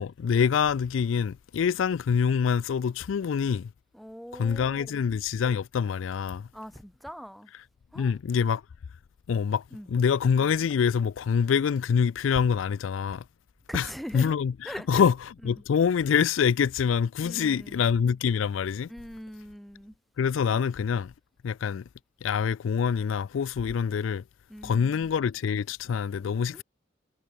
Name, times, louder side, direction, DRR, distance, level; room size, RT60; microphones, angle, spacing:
voice 1, 0.0-3.7 4.3-6.5 8.0-8.6 9.3-13.2 13.7-13.9 14.1-18.9 20.2-21.1 21.4-21.8 22.2-24.2 24.6-26.6, left 7 dB, 80° left, 0.4 m, -25 dB
voice 2, 3.9-5.0 6.5-7.5 7.9-8.1 9.7-9.9 13.7-14.4 14.7-15.0 17.2-17.8 18.9-19.9 20.5-20.7 24.5-25.1 26.5-26.6, equal, ahead, 1.7 m, -41 dB
head